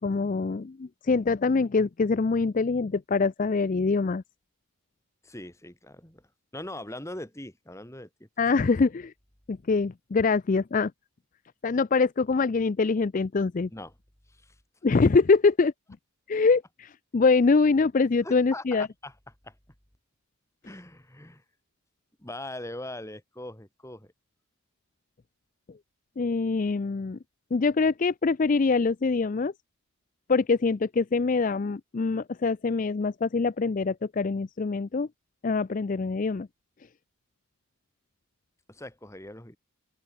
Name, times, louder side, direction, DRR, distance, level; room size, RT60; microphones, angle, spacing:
voice 1, 0.0-4.2 8.4-9.1 9.5-10.9 11.6-13.7 14.8-15.7 16.3-18.9 26.2-27.2 27.5-29.5 30.3-35.1 35.4-36.5, left 4 dB, 35° left, 0.4 m, -24 dB
voice 2, 5.2-8.3 13.7-14.0 14.3-14.6 18.2-19.5 20.6-21.4 22.2-24.1 38.7-39.6, left 1 dB, 15° left, 2.8 m, -41 dB
open air
head